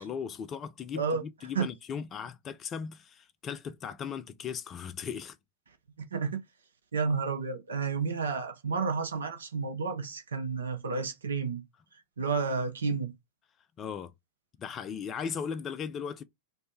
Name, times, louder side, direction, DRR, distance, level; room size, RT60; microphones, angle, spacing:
voice 1, 0.0-5.4 13.8-14.1 14.6-16.2, left 7 dB, 25° left, 0.3 m, -37 dB
voice 2, 6.9-11.6 12.2-13.1, right 5 dB, 70° right, 0.6 m, -31 dB
3.2 x 2.1 x 2.9 m
figure-of-eight pair, 90°, 0 cm